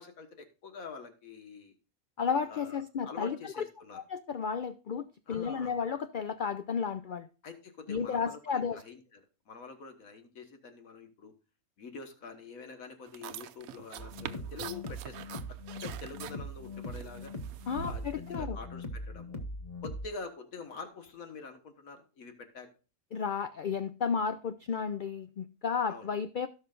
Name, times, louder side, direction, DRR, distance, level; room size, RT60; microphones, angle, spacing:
voice 1, 0.0-1.7 2.4-4.0 5.3-5.8 7.4-11.3 11.8-15.4 15.8-17.3 17.8-19.4 19.8-22.7 25.9-26.1, left 4 dB, 70° left, 1.8 m, -46 dB
voice 2, 2.2-3.4 3.9-7.3 7.9-8.8 17.7-18.6 23.1-26.5, left 6 dB, 90° left, 0.4 m, -33 dB
sound 1, 13.1-18.4, right 10 dB, 80° right, 1.0 m, -45 dB
sound 2, 14.0-20.1, left 1 dB, 30° left, 1.0 m, -41 dB
17.0 x 5.7 x 2.4 m
omnidirectional pair, 1.5 m